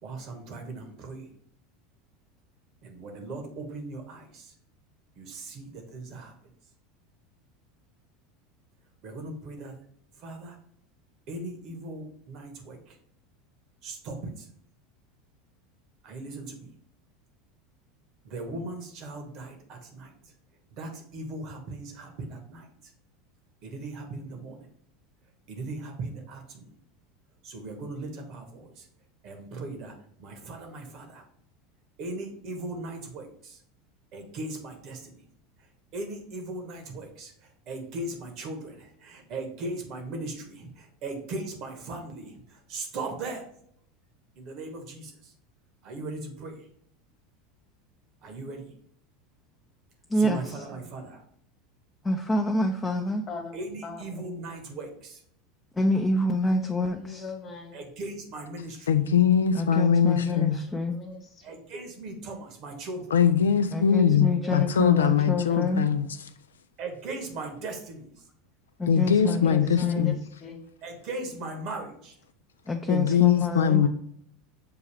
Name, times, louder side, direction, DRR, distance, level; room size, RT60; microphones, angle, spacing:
voice 1, 0.0-1.3 2.8-4.5 5.2-6.3 9.0-9.7 10.2-10.6 11.3-12.9 13.8-14.5 16.0-16.7 18.2-20.3 20.7-22.7 23.6-24.7 25.5-26.7 27.4-28.9 29.2-29.9 30.2-31.2 32.0-33.6 34.1-35.2 35.9-43.5 44.3-45.3 45.8-46.6 48.2-48.7 50.2-51.2 53.5-55.2 57.7-59.0 61.4-63.1 66.8-68.1 70.8-72.1, right 2 dB, 50° right, 1.1 m, -38 dB
voice 2, 50.1-50.4 52.0-53.2 55.8-57.2 59.5-61.0 63.7-65.9 68.8-70.1 72.7-73.8, left 2 dB, 15° left, 0.5 m, -27 dB
voice 3, 53.0-54.3 56.6-57.8 60.0-61.6 64.2-65.6 69.2-70.1 70.4-70.6 73.1-73.9, left 4 dB, 35° left, 1.3 m, -42 dB
voice 4, 58.9-60.6 63.1-66.1 68.9-70.1 72.9-73.9, left 8 dB, 85° left, 0.3 m, -22 dB
6.8 x 2.3 x 3.3 m
hypercardioid pair, 85°, 0 cm